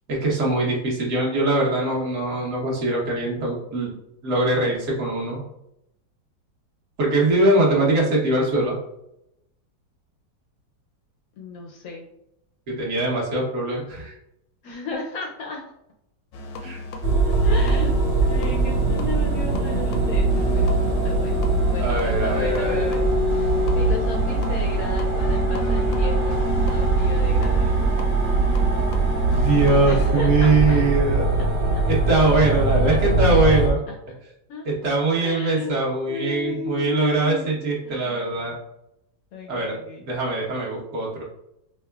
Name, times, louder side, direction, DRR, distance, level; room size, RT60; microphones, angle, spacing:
voice 1, 0.1-3.9 4.2-5.4 7.0-8.7 12.7-14.1 16.6-16.8 21.8-22.8 29.3-31.4 31.9-33.8 34.6-38.5 39.5-41.2, right 2 dB, 50° right, -4 dB, 1.3 m, -22 dB
voice 2, 7.4-7.8 11.4-12.1 14.6-15.6 17.3-17.9 18.2-20.7 21.0-21.4 21.7-23.1 23.3-23.5 23.7-27.9 29.8-30.8 31.4-31.5 32.8-33.0 33.9-34.0 34.5-34.7 35.2-35.7 36.1-37.6 37.8-38.3 39.3-40.1, left 4 dB, 70° left, 0 dB, 0.8 m, -34 dB
sound 1, 16.3-30.1, left 3 dB, 90° left, 1.3 m, -36 dB
sound 2, 17.0-33.7, right 2 dB, 80° right, 1.7 m, -21 dB
5.4 x 2.1 x 2.3 m, 0.82 s
omnidirectional pair, 1.9 m